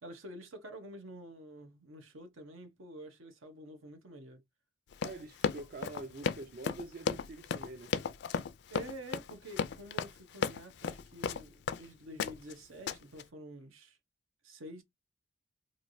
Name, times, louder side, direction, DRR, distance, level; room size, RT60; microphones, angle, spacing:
voice 1, 0.0-4.4 8.7-14.0 14.4-14.8, right 1 dB, 80° right, 0.9 m, -48 dB
Run, 4.9-11.8 12.2-12.5 12.9-13.2, left 6 dB, 55° left, 0.3 m, -35 dB
voice 2, 5.0-7.9, right 3 dB, 45° right, 0.4 m, -45 dB
3.2 x 2.5 x 2.6 m
head